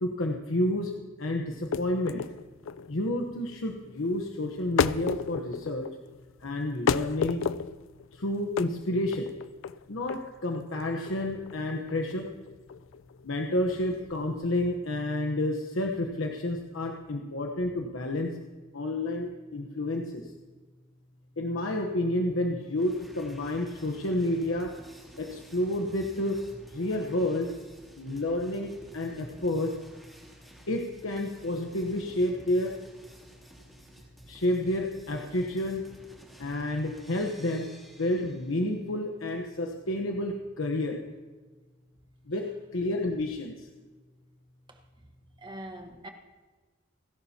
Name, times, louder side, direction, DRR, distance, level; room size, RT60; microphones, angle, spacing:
voice 1, 0.0-0.9 1.2-2.2 2.9-5.9 6.4-7.4 8.1-9.3 9.9-12.3 13.2-18.3 18.7-20.2 21.4-24.7 25.2-26.4 26.7-27.5 28.0-29.8 30.7-32.7 34.3-35.8 36.4-37.7 38.0-41.0 42.3-43.7, left 1 dB, 90° left, 1.1 m, -30 dB
sound 1, 1.5-14.5, left 6 dB, 75° left, 0.4 m, -33 dB
sound 2, 22.8-38.7, equal, ahead, 2.8 m, -52 dB
voice 2, 45.4-46.1, right 1 dB, 25° right, 1.3 m, -42 dB
29.5 x 11.5 x 2.9 m
head